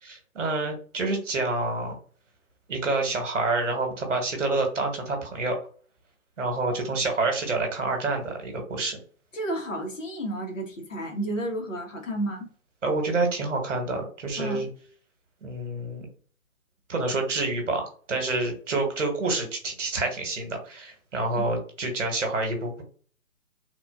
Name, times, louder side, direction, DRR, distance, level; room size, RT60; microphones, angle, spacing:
voice 1, 0.0-2.0 2.7-5.6 6.4-9.0 12.8-14.7 15.4-16.1 16.9-22.8, right 3 dB, 60° right, 1.2 m, -28 dB
voice 2, 9.3-12.5 14.4-14.7 21.3-21.4, right 1 dB, 60° left, 1.3 m, -31 dB
3.5 x 2.4 x 2.3 m
figure-of-eight pair, 155°, 42 cm